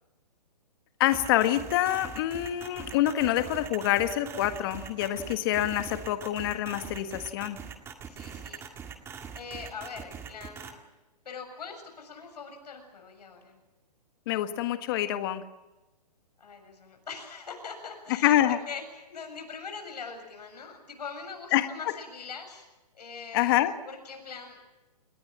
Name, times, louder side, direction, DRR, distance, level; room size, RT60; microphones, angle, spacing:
voice 1, 1.0-7.6 14.3-15.4 18.2-18.6 21.5-21.7 23.3-23.7, left 13 dB, 35° left, 9 dB, 1.6 m, -26 dB
sound 1, 1.1-10.7, right 7 dB, 10° right, 1.9 m, -42 dB
voice 2, 8.1-8.7 9.3-10.9 11.3-13.6 16.4-22.7 22.9-24.6, left 5 dB, 70° left, 4 dB, 7.3 m, -42 dB
30.0 x 20.0 x 7.5 m, 1.1 s
hypercardioid pair, 155°, 21 cm